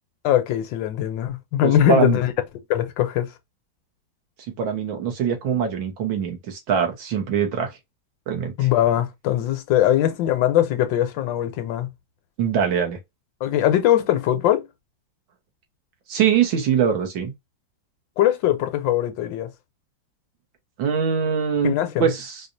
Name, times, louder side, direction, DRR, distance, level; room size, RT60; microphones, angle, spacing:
voice 1, 0.2-2.3 2.7-3.3 8.6-11.9 13.4-14.7 18.2-19.5 21.6-22.1, left 12 dB, 75° left, 1.3 m, -21 dB
voice 2, 1.6-2.2 4.6-7.7 8.3-8.7 12.4-13.0 16.1-17.3 20.8-22.4, right 7 dB, 80° right, 1.8 m, -23 dB
4.7 x 2.4 x 2.6 m
omnidirectional pair, 2.1 m